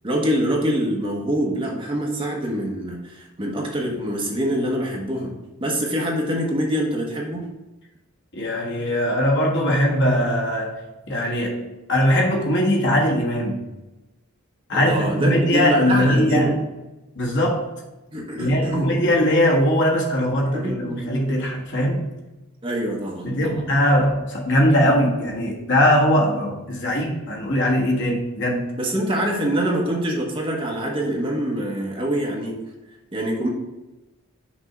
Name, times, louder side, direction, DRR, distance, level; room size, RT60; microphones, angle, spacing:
voice 1, 0.0-5.3 5.6-7.4 14.7-16.6 18.1-19.0 20.5-21.1 22.6-23.6 28.8-32.6 33.1-33.5, right 1 dB, 25° right, -1 dB, 1.1 m, -25 dB
voice 2, 8.3-13.6 14.7-16.5 17.1-17.7 18.4-22.1 23.2-28.7, equal, 55° left, -1 dB, 1.4 m, -20 dB
6.1 x 3.6 x 5.6 m, 1.0 s
head